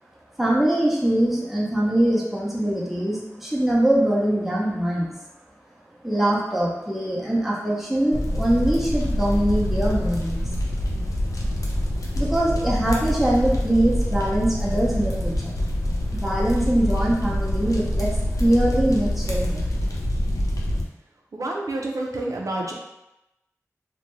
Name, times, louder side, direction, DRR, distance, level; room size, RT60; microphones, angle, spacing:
voice 1, 0.4-5.1 6.0-10.4 12.1-15.5 16.1-19.7, right 1 dB, 5° right, -5 dB, 0.7 m, -23 dB
sound 1, 8.1-20.8, equal, 75° left, 0.5 m, -25 dB
voice 2, 21.3-22.7, right 2 dB, 70° right, -1 dB, 0.5 m, -28 dB
2.5 x 2.2 x 3.0 m, 0.92 s
wide cardioid pair, 40°, 6 cm